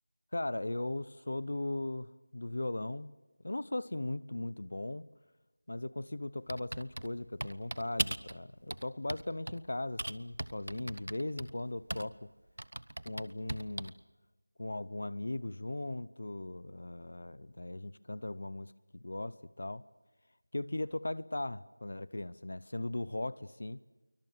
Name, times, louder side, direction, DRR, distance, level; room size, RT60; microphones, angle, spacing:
voice 1, 0.3-3.1 3.4-5.1 5.7-12.3 13.0-13.9 14.6-19.8 20.5-23.8, left 2 dB, 50° left, 19 dB, 0.7 m, -38 dB
Typing, 6.5-8.4 8.7-9.6 10.0-12.2 12.6-14.0, right 1 dB, 70° right, 1.0 m, -38 dB
26.5 x 24.0 x 6.5 m, 1.1 s
figure-of-eight pair, 180°, 0 cm